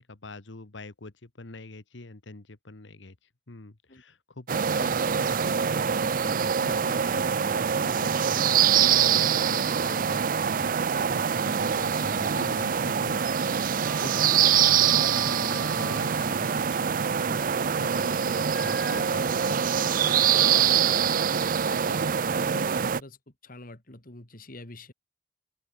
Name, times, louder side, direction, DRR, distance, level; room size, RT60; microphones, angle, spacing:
voice 1, 0.0-3.1 3.5-19.6, left 2 dB, 80° left, 1.5 m, -44 dB
sound 1, 4.5-23.0, right 8 dB, 50° right, 0.5 m, -24 dB
Wind instrument woodwind instrument, 13.8-16.8 17.2-18.0 18.5-20.7, left 1 dB, 5° left, 0.7 m, -45 dB
voice 2, 15.2-15.5 21.7-23.2 23.4-24.9, left 2 dB, 50° left, 2.8 m, -46 dB
open air
head